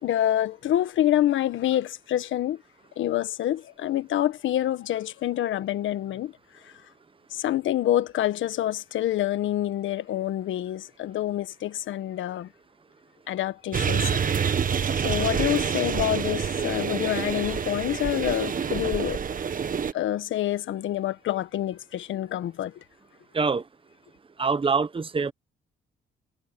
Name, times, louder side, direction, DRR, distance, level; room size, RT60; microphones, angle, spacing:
voice 1, 0.0-2.6 3.0-6.3 6.6-6.7 7.3-12.5 13.3-14.2 14.7-19.2 19.9-22.8, left 12 dB, 75° left, 1.4 m, -27 dB
sound 1, 13.7-19.9, right 7 dB, 45° right, 1.5 m, -27 dB
voice 2, 24.4-25.3, right 5 dB, 25° right, 1.2 m, -24 dB
cardioid pair, 90°, 20 cm